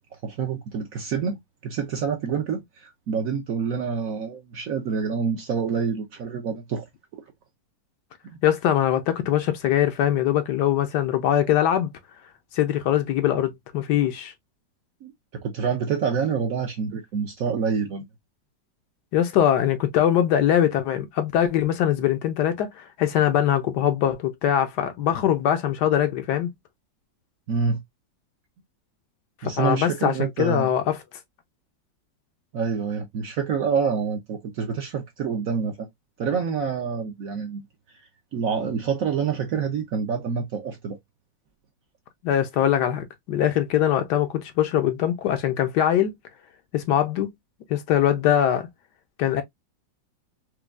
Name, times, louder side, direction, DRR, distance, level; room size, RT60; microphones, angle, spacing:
voice 1, 0.2-6.8 8.2-8.4 15.0-18.0 27.5-27.8 29.4-30.7 32.5-35.9 36.2-37.6 38.3-41.0, right 6 dB, 65° right, 0.9 m, -27 dB
voice 2, 8.4-11.9 12.5-14.3 19.1-26.5 29.4-30.9 42.2-46.1 46.7-47.3 47.7-48.7 49.2-49.4, left 10 dB, 75° left, 1.1 m, -22 dB
4.4 x 2.3 x 2.3 m
omnidirectional pair, 2.0 m